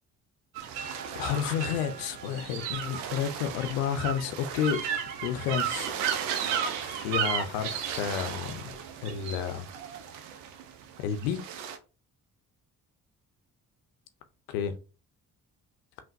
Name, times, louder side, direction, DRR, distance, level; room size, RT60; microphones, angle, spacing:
sound 1, 0.6-11.8, right 8 dB, 75° right, 0.7 m, -34 dB
voice 1, 1.1-4.8 5.2-5.9 6.8-8.7 9.0-9.7 11.0-11.4 14.5-14.7, left 8 dB, 80° left, 0.6 m, -31 dB
5.7 x 2.4 x 2.6 m
hypercardioid pair, 45°, 44 cm